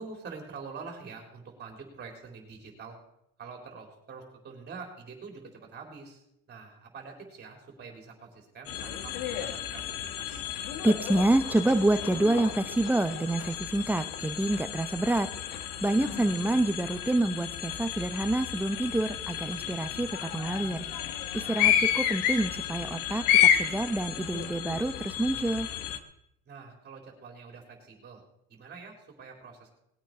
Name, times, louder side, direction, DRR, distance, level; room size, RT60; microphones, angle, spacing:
voice 1, 0.0-3.0 3.4-9.8 10.2-10.4 16.0-16.1 26.5-28.2 28.5-29.8, right 5 dB, 30° right, 2 dB, 4.0 m, -45 dB
sound 1, 8.7-26.0, left 10 dB, 85° left, 1.4 m, -31 dB
voice 2, 10.8-15.3 15.8-20.8 21.3-23.2 23.6-25.7, right 1 dB, 5° right, 10 dB, 0.7 m, -27 dB
20.0 x 9.1 x 4.9 m, 0.79 s
cardioid pair, 135°, 32 cm